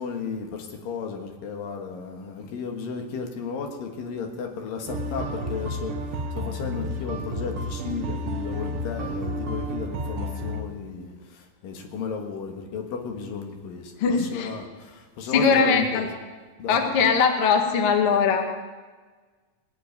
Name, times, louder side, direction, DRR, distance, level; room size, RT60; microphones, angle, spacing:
voice 1, 0.0-16.1 16.6-17.1, left 5 dB, 75° left, 3 dB, 3.2 m, -34 dB
sound 1, 4.9-10.6, equal, 60° right, 1.6 m, -31 dB
voice 2, 14.0-14.5 15.3-16.1 16.7-18.5, left 5 dB, 50° left, 4 dB, 1.8 m, -21 dB
19.0 x 7.8 x 9.3 m, 1.4 s
omnidirectional pair, 4.1 m